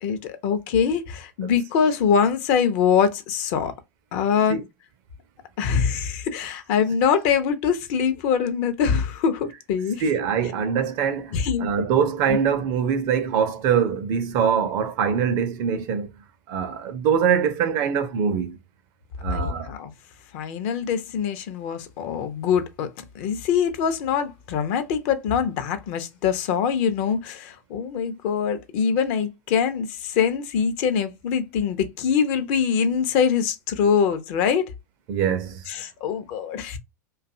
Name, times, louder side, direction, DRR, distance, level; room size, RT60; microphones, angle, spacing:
voice 1, 0.0-3.7 4.1-4.6 5.6-10.0 11.3-11.7 12.3-12.4 19.3-19.9 20.3-22.9 23.1-34.7 35.7-36.8, left 7 dB, 45° left, 0.5 m, -23 dB
voice 2, 10.0-16.1 16.5-18.6 19.2-19.7 35.1-35.6, right 7 dB, 45° right, 0.5 m, -23 dB
2.6 x 2.3 x 2.5 m
figure-of-eight pair, 90°, 10 cm